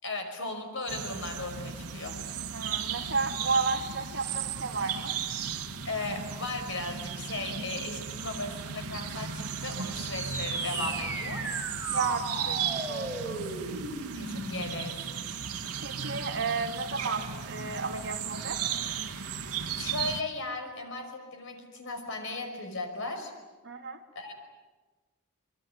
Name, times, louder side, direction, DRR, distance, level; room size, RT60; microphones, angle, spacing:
voice 1, 0.0-2.2 5.8-11.5 14.2-15.2 19.6-23.3 24.2-24.3, left 2 dB, 60° left, 5 dB, 5.7 m, -37 dB
sound 1, 0.9-20.2, right 7 dB, 90° right, 1.6 m, -36 dB
voice 2, 2.5-5.1 11.9-13.4 15.8-18.6 23.6-24.0, right 4 dB, 55° right, 3 dB, 2.7 m, -32 dB
sound 2, 9.9-14.9, right 2 dB, 10° right, 4.8 m, -36 dB
25.5 x 23.0 x 9.6 m, 1.2 s
head